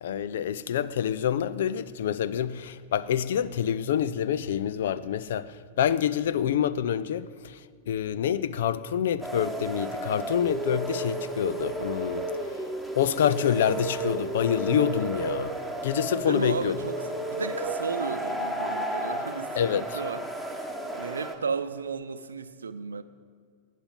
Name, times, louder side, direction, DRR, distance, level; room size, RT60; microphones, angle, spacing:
voice 1, 0.0-12.3 12.9-15.6 15.8-16.8 19.6-20.0, left 9 dB, 60° left, 0.5 m, -27 dB
sound 1, 9.2-21.4, right 1 dB, 5° left, 1.7 m, -33 dB
voice 2, 16.2-20.2 20.9-23.0, right 5 dB, 70° right, 0.7 m, -34 dB
18.5 x 9.3 x 5.4 m
figure-of-eight pair, 90°, 0 cm